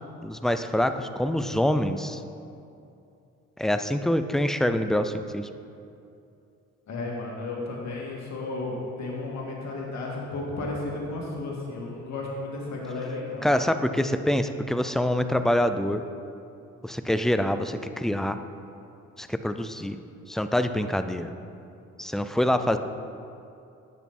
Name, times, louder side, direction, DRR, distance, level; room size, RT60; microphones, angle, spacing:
voice 1, 0.2-2.2 3.6-5.5 13.4-16.0 16.8-18.4 19.2-20.0 20.3-21.3 22.0-22.8, left 1 dB, ahead, 9 dB, 0.4 m, -25 dB
voice 2, 6.9-13.7, left 2 dB, 65° left, -3 dB, 2.3 m, -33 dB
10.5 x 8.4 x 4.3 m, 2.7 s
cardioid pair, 90°, 30 cm